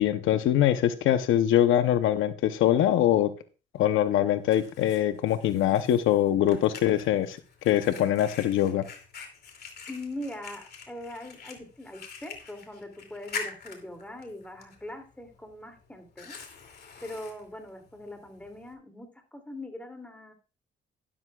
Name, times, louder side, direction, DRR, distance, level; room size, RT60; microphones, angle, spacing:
voice 1, 0.0-3.3 3.7-7.4 7.6-8.8, left 11 dB, 85° left, 10 dB, 0.8 m, -23 dB
Fire, 3.8-18.7, left 5 dB, 55° left, 2.7 m, -45 dB
voice 2, 9.9-16.4 17.0-20.3, left 1 dB, 5° left, 4 dB, 2.7 m, -41 dB
12.5 x 11.5 x 2.4 m, 0.34 s
cardioid pair, 90°, 20 cm